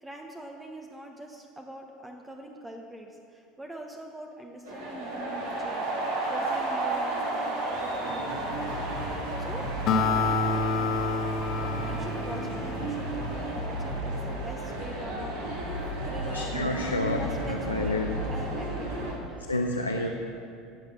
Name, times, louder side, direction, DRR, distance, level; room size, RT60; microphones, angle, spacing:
voice 1, 0.0-9.0 9.4-9.7 11.9-15.4 16.0-16.7 17.2-19.5, right 1 dB, 10° right, 2 dB, 1.1 m, -43 dB
sound 1, 4.6-19.1, right 1 dB, 65° right, 3.0 m, -32 dB
Acoustic guitar, 9.9-13.5, left 3 dB, 45° left, 1.0 m, -28 dB
voice 2, 16.3-17.2 17.5-18.1 19.5-20.1, left 2 dB, 85° left, 1 dB, 0.7 m, -29 dB
14.5 x 8.8 x 6.1 m, 2.5 s
figure-of-eight pair, 70°, 0 cm